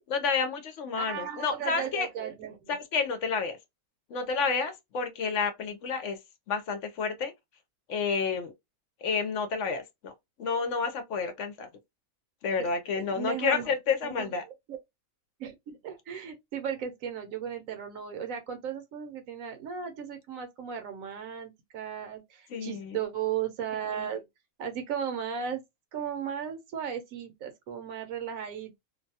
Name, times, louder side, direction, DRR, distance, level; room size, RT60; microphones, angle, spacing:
voice 1, 0.1-2.1 2.7-3.6 4.1-6.2 6.5-7.3 7.9-8.5 9.0-10.1 10.4-11.7 12.4-14.4 22.5-23.0, left 5 dB, 65° left, 0.8 m, -30 dB
voice 2, 0.9-2.7 12.6-12.7 13.0-13.7 14.0-14.3 14.7-14.8 15.4-24.3 24.6-25.6 25.9-28.8, right 8 dB, 70° right, 1.0 m, -36 dB
2.5 x 2.2 x 2.7 m
omnidirectional pair, 1.6 m